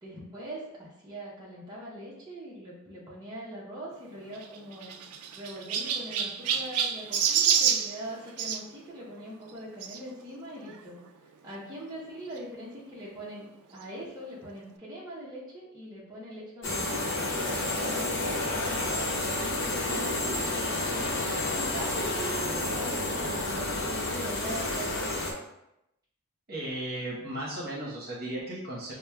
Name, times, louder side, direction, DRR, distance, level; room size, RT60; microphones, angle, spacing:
voice 1, 0.0-5.0 5.3-10.9 11.4-18.4 18.7-20.0 20.4-25.2, equal, 15° right, -8 dB, 0.7 m, -42 dB
Chirp tweet, 4.3-8.6 9.8-10.0 10.7-10.8 11.0-11.1 12.4-12.5, right 8 dB, 85° right, 0.3 m, -28 dB
sound 1, 16.6-25.3, left 2 dB, 60° left, 0.8 m, -30 dB
voice 2, 26.5-28.9, right 1 dB, 45° right, -6 dB, 0.9 m, -35 dB
6.0 x 2.1 x 2.2 m, 0.85 s
head